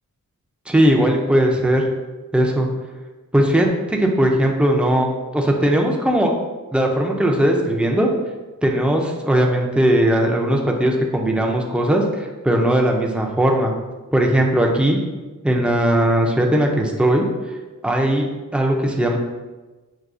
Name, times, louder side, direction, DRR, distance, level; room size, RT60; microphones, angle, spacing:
voice 1, 0.7-1.8 2.3-2.7 3.3-5.1 5.3-6.3 6.7-8.1 8.6-13.7 14.1-15.0 15.4-17.2 17.8-18.3 18.5-19.2, right 1 dB, 5° right, 0 dB, 0.4 m, -18 dB
6.0 x 2.7 x 2.5 m, 1.2 s
wide cardioid pair, 170°, 31 cm